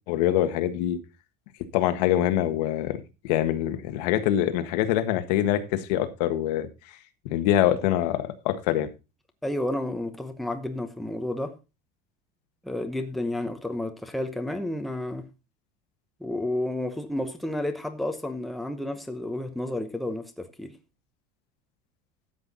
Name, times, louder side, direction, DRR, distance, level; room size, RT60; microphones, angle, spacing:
voice 1, 0.1-1.0 1.7-3.0 3.2-6.7 7.3-8.9, left 12 dB, 90° left, 1.6 m, -24 dB
voice 2, 9.4-11.5 12.6-15.3 16.2-20.8, left 1 dB, ahead, 0.9 m, -31 dB
13.0 x 8.0 x 4.0 m
cardioid pair, 175°, 20 cm